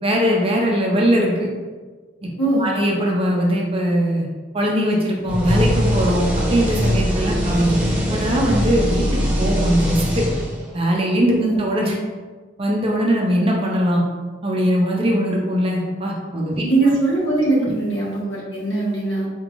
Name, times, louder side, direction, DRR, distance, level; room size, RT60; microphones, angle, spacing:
voice 1, 0.0-1.5 2.2-2.3 2.6-4.3 4.5-7.8 8.1-9.1 9.4-10.3 10.7-11.9 12.6-14.0 14.4-16.6, equal, 30° right, -1 dB, 0.6 m, -20 dB
voice 2, 2.4-2.7 11.4-11.6 16.6-19.3, right 2 dB, 65° left, -7 dB, 1.5 m, -20 dB
sound 1, 5.3-10.8, equal, 10° right, 1.4 m, -21 dB
4.3 x 3.2 x 2.5 m, 1.4 s
head